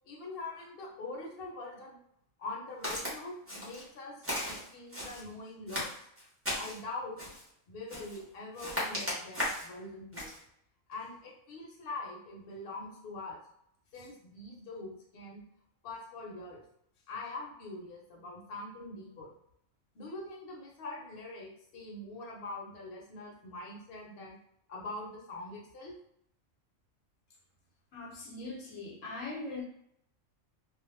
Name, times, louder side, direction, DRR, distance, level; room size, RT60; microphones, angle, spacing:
voice 1, 0.0-2.0 2.4-5.9 6.6-7.2 7.7-10.3 10.9-13.4 13.9-15.4 15.8-16.6 17.1-19.3 19.9-24.4 24.7-26.0, left 2 dB, 55° left, -3 dB, 0.9 m, -43 dB
Walk footsteps, 2.8-3.1 3.5-3.9 4.2-5.2 5.7-6.8 7.2-7.5 7.9-8.2 8.6-9.7 10.1-10.4, left 1 dB, 15° right, 0.6 m, -36 dB
voice 2, 27.9-29.6, left 3 dB, 75° left, -2 dB, 1.1 m, -41 dB
2.4 x 2.1 x 3.1 m, 0.72 s
omnidirectional pair, 1.3 m